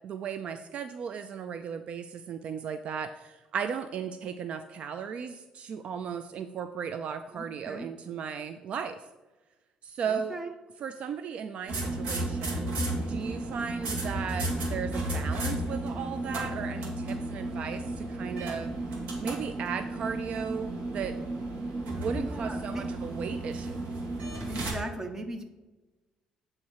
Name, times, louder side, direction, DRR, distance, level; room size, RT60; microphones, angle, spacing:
voice 1, 0.0-9.1 9.8-10.4 10.8-18.7 19.2-21.2 21.9-23.9, right 7 dB, 55° right, 9 dB, 0.3 m, -36 dB
voice 2, 7.3-7.9 10.1-10.5 22.1-22.9 24.5-25.4, right 1 dB, 20° right, 6 dB, 0.8 m, -38 dB
sound 1, 11.7-24.7, right 2 dB, 75° right, 1.7 m, -33 dB
8.4 x 3.2 x 4.6 m, 1.1 s
cardioid pair, 115°, 2 cm